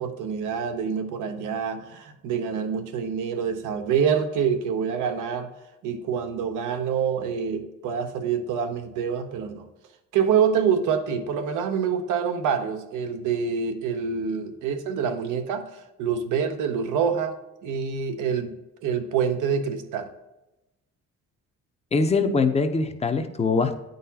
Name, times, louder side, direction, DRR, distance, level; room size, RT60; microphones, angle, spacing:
voice 1, 0.0-5.5 5.8-9.7 10.1-15.6 16.0-17.4 17.6-18.5 18.8-20.1, right 7 dB, 85° right, 7 dB, 0.7 m, -26 dB
voice 2, 21.9-23.8, left 4 dB, 20° left, 8 dB, 0.6 m, -22 dB
9.0 x 3.9 x 2.8 m, 0.96 s
cardioid pair, 90°, 30 cm